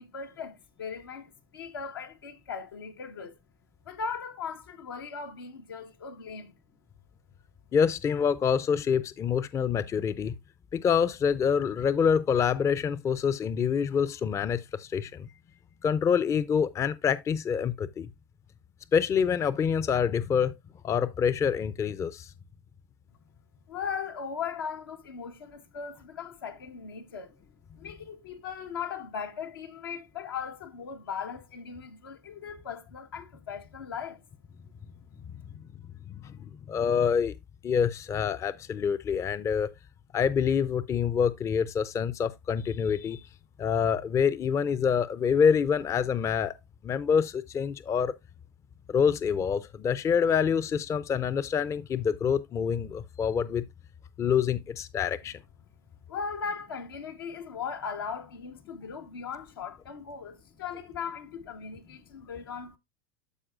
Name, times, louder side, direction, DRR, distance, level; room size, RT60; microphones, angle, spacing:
voice 1, 0.0-3.3 3.9-6.5 23.7-27.3 27.8-34.2 56.1-62.8, left 6 dB, 90° left, 1.3 m, -38 dB
voice 2, 7.7-10.3 10.7-15.3 15.8-18.1 18.9-20.5 20.8-22.3 36.1-36.4 36.7-37.4 37.6-39.7 40.1-43.2 43.6-46.6 46.8-48.1 48.9-53.6 54.2-55.4, left 7 dB, 25° left, 0.5 m, -26 dB
13.5 x 4.7 x 2.4 m
hypercardioid pair, 100°, 12 cm